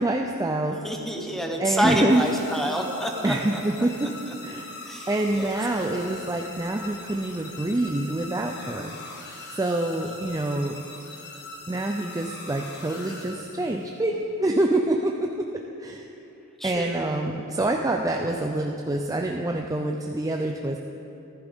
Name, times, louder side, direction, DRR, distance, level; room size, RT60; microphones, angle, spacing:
voice 1, 0.0-0.8 1.6-2.2 3.2-4.1 4.4-4.7 5.1-8.9 9.5-10.8 11.7-15.5 15.8-16.0 16.6-20.8, right 2 dB, 15° right, 2 dB, 0.4 m, -26 dB
voice 2, 0.8-3.3 4.8-5.5 10.0-10.1 16.6-17.1, equal, ahead, 1 dB, 1.0 m, -28 dB
sound 1, 2.1-14.0, left 2 dB, 50° left, 1.4 m, -41 dB
14.5 x 14.0 x 3.6 m, 2.9 s
head